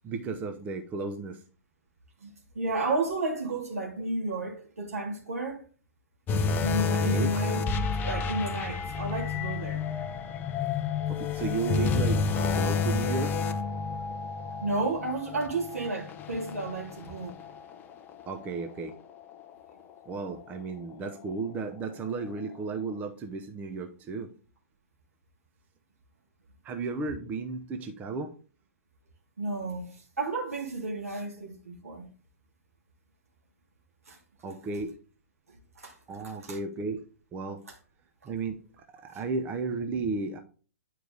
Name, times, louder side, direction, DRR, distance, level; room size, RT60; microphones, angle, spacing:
voice 1, 0.0-1.4 7.0-7.3 11.1-12.2 12.5-13.3 18.3-18.9 20.0-24.3 26.6-28.3 34.4-34.9 36.1-37.0 37.3-37.6 38.2-38.6 39.0-40.4, right 4 dB, 20° right, 0.7 m, -33 dB
voice 2, 2.2-5.6 6.6-7.6 8.0-9.8 14.6-17.3 29.4-29.9 30.2-32.1 34.1-34.2 35.8-35.9 36.5-36.6 39.0-39.2, right 3 dB, 70° right, 2.6 m, -32 dB
sound 1, 6.3-17.7 18.1-18.3 18.9-19.0, left 4 dB, 20° left, 0.7 m, -30 dB
9.2 x 4.7 x 3.9 m
figure-of-eight pair, 115°, 8 cm